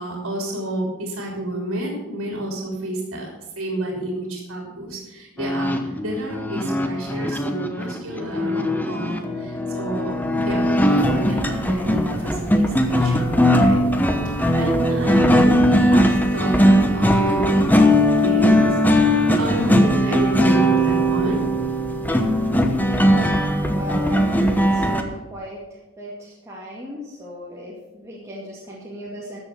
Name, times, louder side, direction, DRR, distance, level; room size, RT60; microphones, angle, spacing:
voice 1, 0.0-13.8 14.5-18.0 18.2-21.4, right 1 dB, 75° right, -1 dB, 3.2 m, -30 dB
sound 1, 5.4-25.0, equal, 10° left, 1.0 m, -19 dB
voice 2, 23.6-25.6 26.0-29.4, left 1 dB, 15° right, -6 dB, 2.2 m, -37 dB
13.0 x 7.1 x 6.9 m, 1.1 s
head